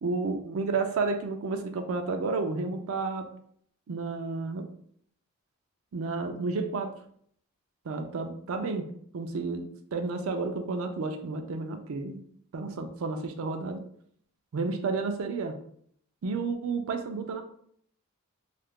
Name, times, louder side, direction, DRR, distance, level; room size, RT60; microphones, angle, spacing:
voice 1, 0.0-3.3 3.9-4.7 5.9-6.9 7.8-8.9 9.1-9.6 9.9-12.2 12.5-13.8 14.5-15.6 16.2-17.4, right 4 dB, 65° right, 6 dB, 0.4 m, -31 dB
2.7 x 2.4 x 3.6 m, 0.64 s
head